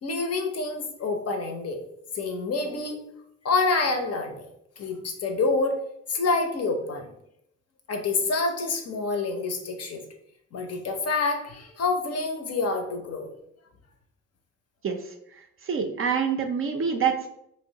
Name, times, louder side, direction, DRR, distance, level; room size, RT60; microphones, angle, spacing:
voice 1, 0.0-1.8 2.1-3.0 3.4-4.5 4.8-5.8 6.1-7.1 7.9-10.0 10.5-13.3, left 3 dB, 45° left, 4 dB, 0.6 m, -27 dB
voice 2, 15.7-17.3, right 6 dB, 40° right, 4 dB, 0.4 m, -26 dB
2.8 x 2.0 x 2.7 m, 0.76 s
hypercardioid pair, 45°, 36 cm